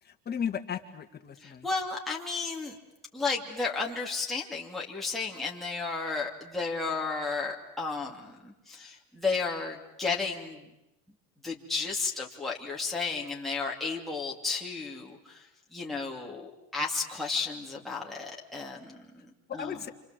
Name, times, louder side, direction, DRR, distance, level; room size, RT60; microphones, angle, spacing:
voice 1, 0.0-1.7 19.6-19.9, left 7 dB, 25° left, 4 dB, 2.2 m, -35 dB
voice 2, 1.4-2.8 3.1-10.7 11.4-19.8, left 4 dB, ahead, -3 dB, 2.7 m, -33 dB
28.5 x 26.5 x 7.8 m, 0.92 s
supercardioid pair, 135°, 40 cm